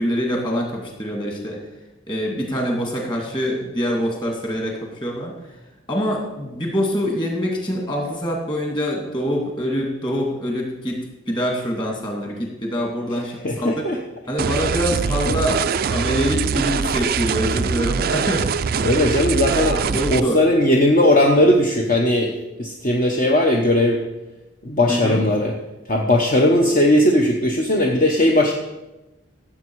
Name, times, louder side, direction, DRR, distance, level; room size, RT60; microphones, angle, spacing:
voice 1, 0.0-1.6 2.1-5.3 5.9-13.9 14.3-18.5 19.9-20.4 24.9-25.2, equal, 25° left, 0 dB, 2.3 m, -25 dB
voice 2, 13.4-14.0 18.8-24.0 24.6-25.5 25.9-28.5, left 1 dB, 40° left, 1 dB, 1.0 m, -18 dB
sound 1, 14.4-20.2, right 6 dB, 50° right, 0.3 m, -23 dB
15.5 x 7.4 x 4.7 m, 1.0 s
head